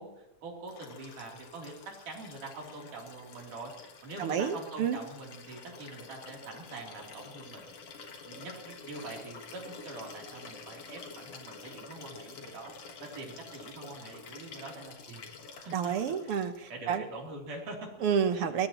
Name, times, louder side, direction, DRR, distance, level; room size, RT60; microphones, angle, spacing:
voice 1, 0.0-7.8 8.3-15.2 15.6-15.9 16.2-16.3 16.7-17.9 18.3-18.5, right 2 dB, 80° right, -1 dB, 4.9 m, -44 dB
Liquid, 0.7-16.7 18.0-18.1, left 4 dB, 55° left, 2.6 m, -49 dB
voice 2, 4.2-5.0 15.7-17.0 18.0-18.7, right 7 dB, 65° right, 9 dB, 1.5 m, -29 dB
22.5 x 19.0 x 3.1 m, 0.91 s
omnidirectional pair, 3.6 m